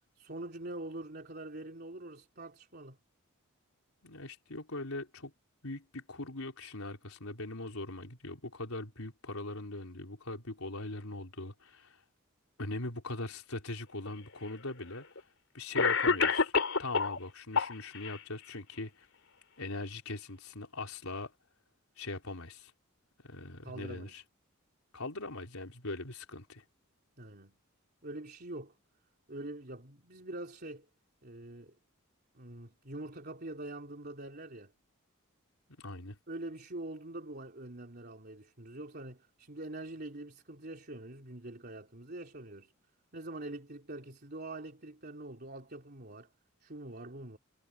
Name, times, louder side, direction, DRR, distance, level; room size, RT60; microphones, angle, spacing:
voice 1, 0.2-3.0 23.6-24.2 27.2-27.6 28.0-28.8 29.3-30.9 31.2-31.8 32.4-34.7 36.3-42.7 43.1-46.3 46.6-47.4, right 2 dB, 50° right, 3.5 m, -44 dB
voice 2, 4.0-5.3 5.6-12.0 12.6-15.1 15.5-16.5 16.8-18.9 19.6-21.3 22.0-22.7 23.2-24.2 24.9-26.6 35.7-36.2, left 2 dB, 85° left, 4.4 m, -41 dB
Cough, 14.1-14.2 15.2-15.3 15.8-17.2 17.5-18.2, left 5 dB, 70° left, 3.6 m, -28 dB
head